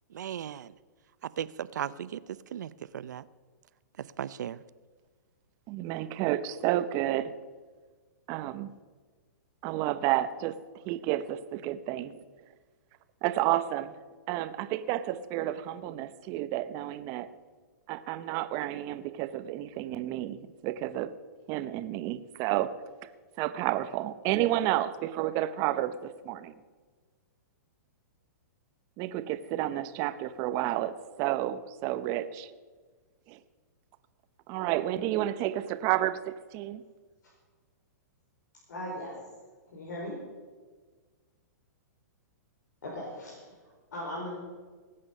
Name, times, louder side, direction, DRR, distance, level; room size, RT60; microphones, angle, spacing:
voice 1, 0.1-0.7 1.2-3.3 4.0-4.6, right 10 dB, 75° right, 18 dB, 0.6 m, -37 dB
voice 2, 5.7-7.3 8.3-8.7 9.6-10.5 10.8-12.2 13.2-13.9 14.3-17.3 17.9-21.1 21.5-22.7 23.4-26.5 29.0-32.5 33.3-33.4 34.5-36.8, right 14 dB, 35° right, 12 dB, 0.8 m, -31 dB
voice 3, 38.7-39.1 39.7-40.2 42.8-43.5 43.9-44.4, left 1 dB, 85° left, -5 dB, 4.9 m, -38 dB
19.5 x 8.7 x 5.5 m, 1.4 s
hypercardioid pair, 140°, 10 cm